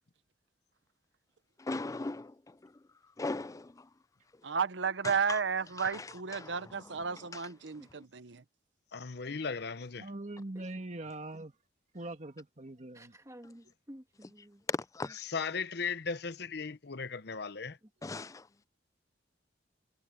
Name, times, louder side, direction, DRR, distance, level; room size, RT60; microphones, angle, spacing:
voice 1, 1.6-2.8 3.2-3.9 5.0-5.4 5.8-7.5 14.7-15.2 18.0-18.5, left 3 dB, 20° left, 0.4 m, -39 dB
voice 2, 4.4-8.4, right 6 dB, 75° right, 0.9 m, -33 dB
voice 3, 8.9-10.1 15.3-17.8, left 5 dB, 60° left, 0.9 m, -37 dB
voice 4, 10.0-11.5 11.9-13.1, right 2 dB, 40° right, 1.8 m, -42 dB
voice 5, 12.9-14.6 15.0-15.1 17.8-18.3, equal, 15° right, 1.7 m, -53 dB
head